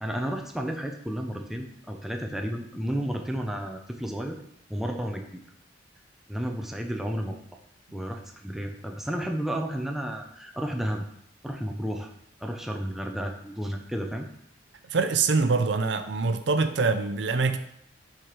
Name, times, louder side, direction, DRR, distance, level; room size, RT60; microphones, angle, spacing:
voice 1, 0.0-4.4 4.7-5.3 6.3-7.4 7.9-11.0 11.4-12.1 12.4-14.3, equal, ahead, 2 dB, 0.6 m, -32 dB
voice 2, 14.9-17.6, right 4 dB, 70° right, 10 dB, 0.6 m, -24 dB
6.4 x 5.0 x 4.5 m, 0.70 s
head